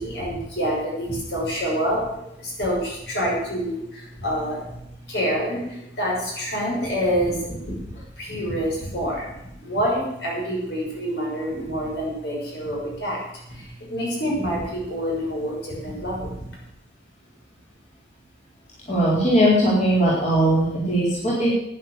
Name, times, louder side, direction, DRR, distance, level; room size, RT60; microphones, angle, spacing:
voice 1, 0.0-2.1 2.4-13.2 13.5-16.5, equal, 65° left, -3 dB, 6.5 m, -27 dB
voice 2, 18.9-21.5, right 1 dB, 40° left, -7 dB, 4.2 m, -19 dB
11.0 x 10.0 x 8.2 m, 0.82 s
head